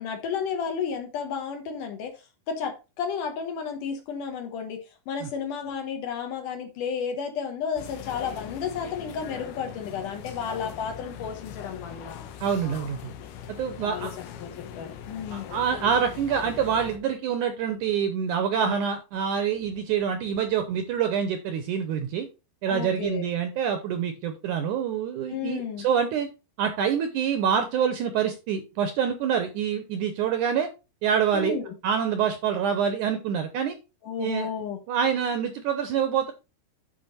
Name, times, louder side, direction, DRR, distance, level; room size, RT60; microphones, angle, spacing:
voice 1, 0.0-2.1 2.5-4.8 5.1-12.2 13.8-14.1 14.4-15.5 18.6-18.8 22.7-23.3 25.3-25.9 31.3-31.7 34.0-34.8, left 6 dB, 65° left, 5 dB, 2.5 m, -32 dB
sound 1, 7.8-17.0, left 9 dB, 90° left, 3.0 m, -41 dB
voice 2, 12.4-13.1 13.5-14.1 15.3-22.3 22.6-26.3 26.6-30.7 31.0-31.5 31.8-33.8 34.2-34.5 34.9-36.3, right 7 dB, 75° right, 8 dB, 1.9 m, -26 dB
10.0 x 4.6 x 4.1 m, 0.29 s
omnidirectional pair, 4.4 m